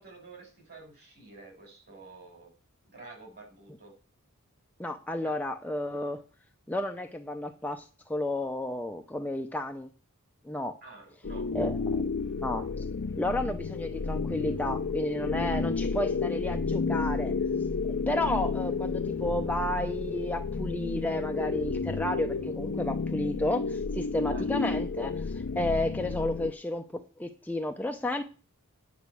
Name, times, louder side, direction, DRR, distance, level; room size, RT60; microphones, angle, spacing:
voice 1, 0.0-2.5 2.9-3.9 5.2-5.3 10.8-11.5 24.3-24.4, right 3 dB, 45° right, 5.4 m, -49 dB
voice 2, 4.8-6.2 6.7-9.9 10.4-10.8 11.5-12.0 12.4-12.9 13.2-17.3 18.1-28.2, left 1 dB, 5° left, 0.6 m, -32 dB
sound 1, 11.2-26.5, left 4 dB, 60° left, 0.6 m, -31 dB
9.6 x 5.8 x 8.3 m
head